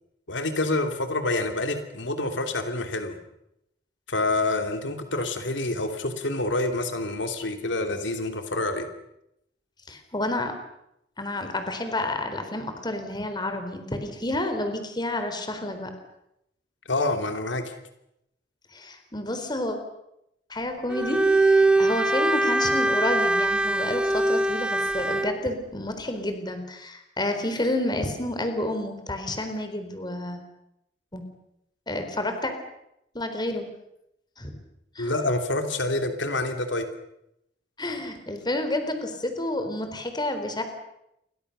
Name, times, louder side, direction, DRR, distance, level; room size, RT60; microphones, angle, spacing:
voice 1, 0.3-3.2 4.1-8.9 16.9-17.6 35.0-36.9, left 2 dB, 80° left, 6 dB, 2.9 m, -27 dB
voice 2, 9.9-10.5 11.2-15.9 18.7-19.8 20.5-30.4 31.1-31.2 31.9-32.5 33.1-33.6 34.4-34.6 35.0-35.1 37.8-40.6, left 1 dB, 25° left, 7 dB, 4.0 m, -30 dB
Bowed string instrument, 20.9-25.4, right 2 dB, 5° right, 0.9 m, -22 dB
29.0 x 24.0 x 6.8 m, 0.82 s
head